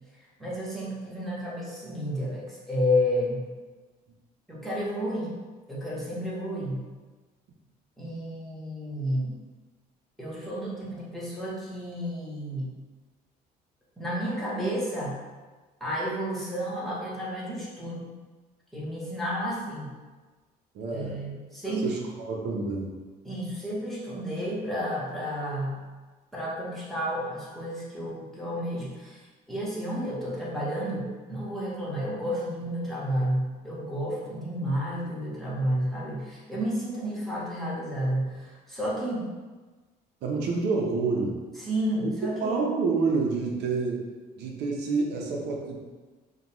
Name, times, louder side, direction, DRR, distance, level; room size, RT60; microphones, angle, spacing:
voice 1, 0.4-3.4 4.5-5.3 5.7-6.8 8.0-9.3 10.2-12.7 14.0-15.2 15.8-18.1 18.7-19.9 20.9-22.0 23.2-25.8 26.3-39.3 41.6-42.6, equal, ahead, -7 dB, 1.2 m, -31 dB
voice 2, 20.7-21.2 21.6-22.9 40.2-41.4 42.0-42.1 42.4-44.0 44.4-45.8, right 4 dB, 75° right, -1 dB, 0.7 m, -28 dB
5.0 x 2.3 x 3.0 m, 1.3 s
cardioid pair, 110°, 17 cm